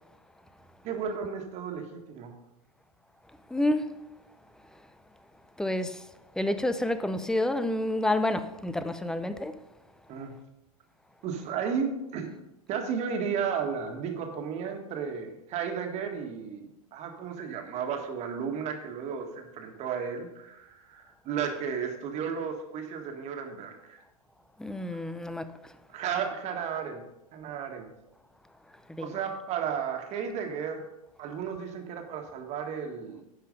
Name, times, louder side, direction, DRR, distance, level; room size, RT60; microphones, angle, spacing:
voice 1, 0.8-2.4 10.1-10.4 11.2-12.3 12.7-24.0 25.9-27.0 27.3-27.9 29.0-30.9 31.2-33.2, right 7 dB, 35° right, 1.7 m, -33 dB
voice 2, 3.5-3.9 5.6-6.1 6.4-9.6 24.6-25.7 28.9-29.1, left 1 dB, 5° left, 0.5 m, -29 dB
10.5 x 5.6 x 5.3 m
hypercardioid pair, 105°, 19 cm